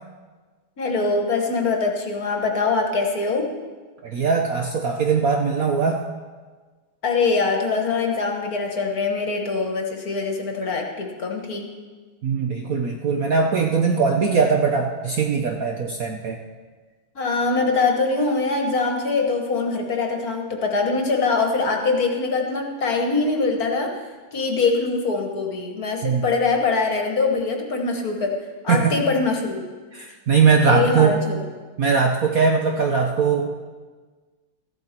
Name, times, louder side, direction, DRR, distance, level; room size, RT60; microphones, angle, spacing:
voice 1, 0.8-3.5 7.0-11.7 17.1-23.9 24.3-28.3 28.6-29.6 30.6-31.4, left 4 dB, 50° left, 2 dB, 1.6 m, -23 dB
voice 2, 4.0-6.0 12.2-16.4 26.0-26.2 28.7-28.9 29.9-31.2 31.8-33.5, right 5 dB, 60° right, 2 dB, 1.0 m, -20 dB
14.5 x 11.5 x 4.4 m, 1.4 s
omnidirectional pair, 2.3 m